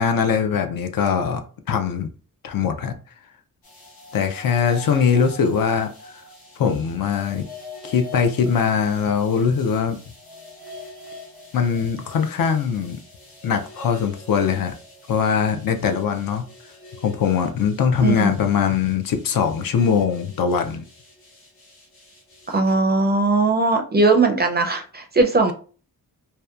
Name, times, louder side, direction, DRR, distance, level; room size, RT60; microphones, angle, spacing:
voice 1, 0.0-1.4 1.7-2.1 2.4-2.9 4.1-6.2 6.6-7.4 7.8-10.0 11.5-13.0 13.4-14.7 15.1-16.5 17.0-20.9, left 6 dB, 70° left, 6 dB, 0.5 m, -21 dB
sound 1, 3.6-22.7, left 2 dB, 90° left, 1.2 m, -44 dB
voice 2, 18.0-18.3 22.5-25.5, right 3 dB, 30° right, 4 dB, 0.4 m, -19 dB
2.7 x 2.1 x 2.3 m, 0.38 s
wide cardioid pair, 120°, 36 cm